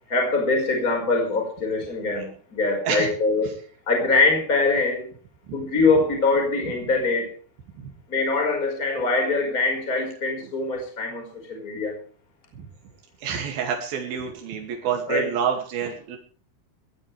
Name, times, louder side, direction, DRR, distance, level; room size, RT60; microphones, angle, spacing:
voice 1, 0.1-3.6 3.9-5.1 5.5-7.3 8.1-12.0 15.1-15.3, left 3 dB, 25° left, 2 dB, 5.4 m, -23 dB
voice 2, 13.2-16.2, right 7 dB, 85° right, 2 dB, 4.2 m, -28 dB
21.0 x 16.5 x 3.4 m, 0.43 s
omnidirectional pair, 4.1 m